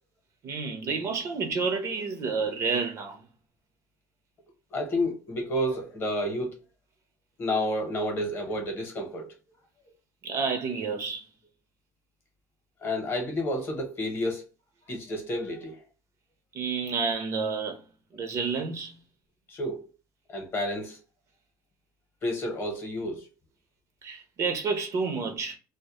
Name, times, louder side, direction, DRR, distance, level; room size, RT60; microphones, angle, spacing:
voice 1, 0.4-3.2 10.2-11.3 16.5-17.8 18.1-19.0 24.0-25.6, right 5 dB, 40° right, 0.5 m, -30 dB
voice 2, 4.7-6.6 7.4-9.4 12.8-14.4 14.9-15.8 19.5-19.8 20.3-21.0 22.2-23.3, left 1 dB, 30° left, 0.8 m, -30 dB
2.1 x 2.0 x 2.8 m
cardioid pair, 145°, 7 cm